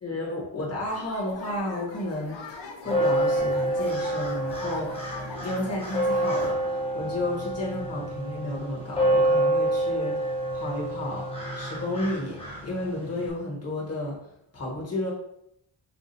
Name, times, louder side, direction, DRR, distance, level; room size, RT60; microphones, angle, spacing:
voice 1, 0.0-5.0 5.4-10.2 10.5-11.2 11.5-12.4 12.6-14.2 14.5-15.1, left 1 dB, 35° left, -5 dB, 1.4 m, -32 dB
sound 1, 0.9-6.5, left 3 dB, 70° left, 0.7 m, -41 dB
sound 2, 2.8-13.3, right 1 dB, 15° left, 0.9 m, -28 dB
5.8 x 2.4 x 2.7 m, 0.75 s
wide cardioid pair, 120°, 46 cm